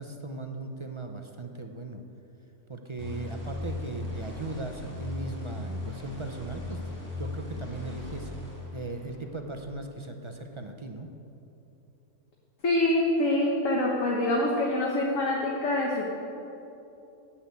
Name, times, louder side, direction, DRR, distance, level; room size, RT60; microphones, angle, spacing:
voice 1, 0.0-2.0 2.7-8.3 8.7-11.1, right 2 dB, 35° right, 4 dB, 0.5 m, -38 dB
sound 1, 3.0-9.4, left 2 dB, 10° left, 2.4 m, -38 dB
voice 2, 12.6-16.0, left 1 dB, 60° left, -2 dB, 1.6 m, -25 dB
10.0 x 8.7 x 8.3 m, 2.9 s
omnidirectional pair, 1.5 m